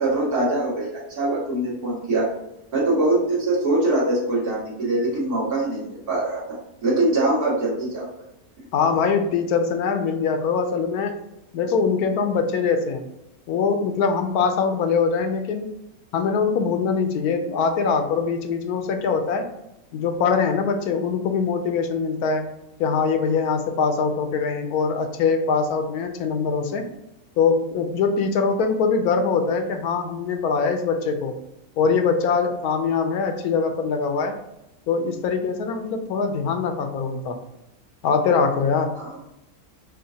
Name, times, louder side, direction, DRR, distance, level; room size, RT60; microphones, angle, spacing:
voice 1, 0.0-2.3 2.7-6.4 6.8-8.1 39.0-39.1, right 2 dB, 75° right, -7 dB, 2.2 m, -23 dB
voice 2, 8.7-11.1 11.5-13.0 13.5-15.8 16.1-19.5 19.9-22.5 22.8-26.8 27.4-31.3 31.8-34.3 34.9-37.4 38.0-38.9, left 5 dB, 80° left, 6 dB, 1.1 m, -23 dB
6.3 x 2.5 x 2.7 m, 0.86 s
omnidirectional pair, 1.6 m